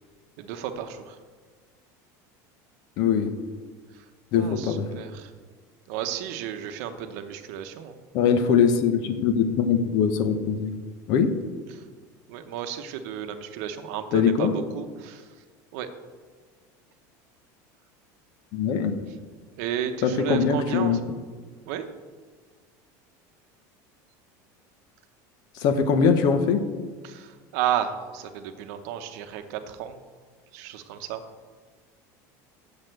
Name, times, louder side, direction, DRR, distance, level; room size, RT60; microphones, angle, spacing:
voice 1, 0.4-1.2 3.9-4.0 4.3-5.3 5.9-8.0 11.7-11.8 12.3-15.3 15.7-15.9 19.1-19.2 19.6-21.0 21.7-21.9 27.0-30.0 30.5-31.2, right 9 dB, 65° right, 8 dB, 0.9 m, -33 dB
voice 2, 3.0-3.3 4.3-4.9 8.1-10.7 11.1-11.3 14.1-14.5 18.5-19.0 20.0-21.0 25.6-26.6, left 6 dB, 50° left, 9 dB, 0.9 m, -22 dB
7.0 x 6.5 x 7.8 m, 1.5 s
cardioid pair, 165°, 9 cm